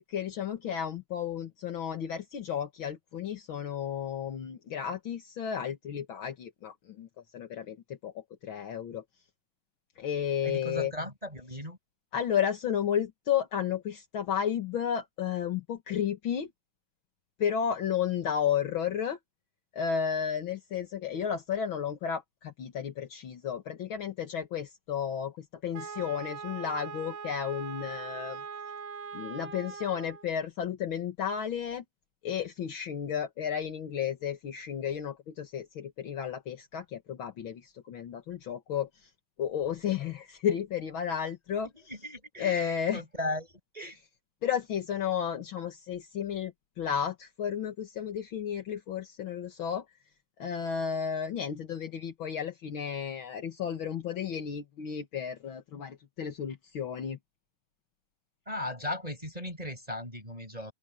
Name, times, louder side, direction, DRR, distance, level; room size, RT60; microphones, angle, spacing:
voice 1, 0.0-7.1 7.3-7.8 8.0-8.1 8.4-9.0 10.0-10.9 12.1-16.5 17.4-19.2 19.7-28.4 29.1-31.8 32.2-38.9 39.4-41.7 42.4-43.0 44.4-46.5 46.8-49.8 50.4-57.2, left 8 dB, 50° left, 1.7 m, -32 dB
voice 2, 10.4-11.8 41.7-44.0 58.5-60.7, left 1 dB, 10° right, 5.6 m, -37 dB
Wind instrument woodwind instrument, 25.7-30.3, right 6 dB, 60° right, 1.8 m, -41 dB
open air
omnidirectional pair, 3.9 m